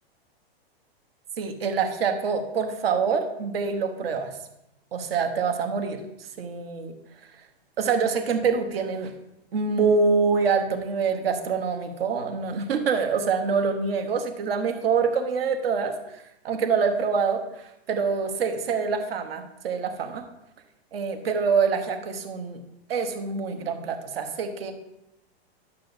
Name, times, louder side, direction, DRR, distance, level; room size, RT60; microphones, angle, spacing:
voice 1, 1.4-4.4 4.9-6.0 6.4-6.9 7.8-9.1 9.5-20.2 20.9-22.6 22.9-24.7, right 5 dB, 65° right, 5 dB, 1.3 m, -25 dB
11.5 x 7.0 x 2.7 m, 0.87 s
supercardioid pair, 175°, 32 cm